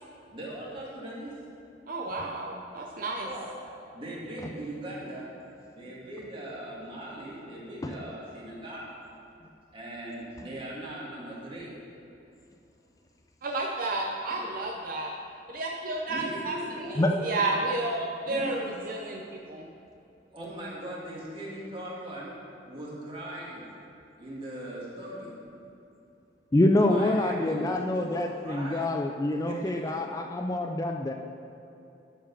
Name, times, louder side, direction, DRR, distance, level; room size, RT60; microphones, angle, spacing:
voice 1, 0.3-1.4 3.2-3.5 3.9-5.3 5.7-8.9 9.7-11.7 16.1-17.4 18.3-18.7 20.3-23.7 24.2-25.4 26.9-28.9 29.5-29.9, right 1 dB, 30° right, -5 dB, 2.3 m, -40 dB
voice 2, 1.9-3.3 13.4-15.1 15.5-16.6 16.9-19.2 19.5-19.7, right 2 dB, 50° right, 0 dB, 0.6 m, -31 dB
voice 3, 26.5-31.1, left 1 dB, 20° left, 4 dB, 0.4 m, -26 dB
12.5 x 5.0 x 5.7 m, 2.8 s
head